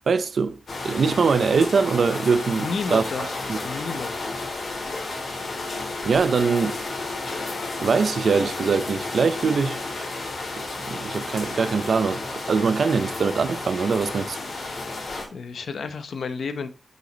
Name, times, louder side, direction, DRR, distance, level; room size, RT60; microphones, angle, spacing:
voice 1, 0.1-0.6 0.8-3.6 6.0-6.8 7.8-9.8 10.9-14.4, right 5 dB, 65° right, 0.7 m, -22 dB
sound 1, 0.7-15.3, left 3 dB, 55° left, 2.5 m, -32 dB
voice 2, 2.6-4.2 15.3-16.7, left 5 dB, 85° left, 0.8 m, -31 dB
6.4 x 5.1 x 4.0 m
wide cardioid pair, 180°, 0 cm